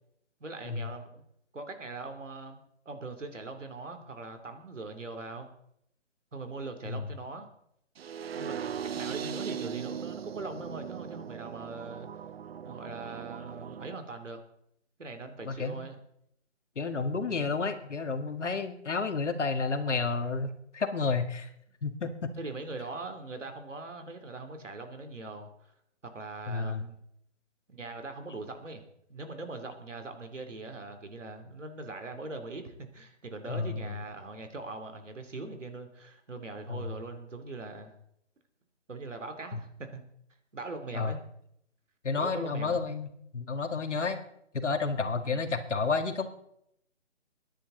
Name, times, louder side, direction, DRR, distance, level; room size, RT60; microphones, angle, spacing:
voice 1, 0.4-1.2 1.5-5.5 6.3-7.5 8.3-8.7 8.9-12.1 12.6-14.4 15.0-16.0 17.3-17.6 22.4-25.5 26.1-27.0 27.7-28.8 29.1-37.9 38.9-40.0 40.5-41.2 42.2-42.8 45.2-45.5, right 3 dB, 85° right, 7 dB, 3.1 m, -41 dB
sound 1, 8.0-13.9, right 8 dB, 55° right, 0.5 m, -39 dB
voice 2, 15.5-15.9 16.8-21.5 21.8-22.3 26.5-26.9 33.5-33.9 36.7-36.9 39.5-39.6 40.9-41.1 42.0-43.1 43.3-44.2 44.5-46.3, left 4 dB, 75° left, 8 dB, 1.9 m, -31 dB
23.0 x 10.5 x 3.9 m, 0.74 s
figure-of-eight pair, 155°, 36 cm